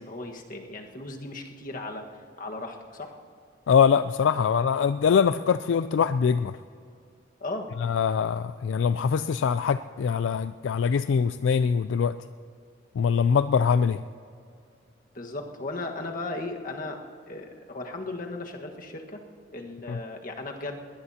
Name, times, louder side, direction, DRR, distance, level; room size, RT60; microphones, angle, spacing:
voice 1, 0.0-3.1 7.4-7.7 15.1-17.0 17.3-19.2 19.5-20.8, left 2 dB, 45° left, 2 dB, 1.5 m, -36 dB
voice 2, 3.7-6.6 7.8-12.2 13.0-14.0 19.9-20.0, left 6 dB, 75° left, 12 dB, 0.3 m, -23 dB
21.0 x 19.0 x 2.9 m, 2.4 s
head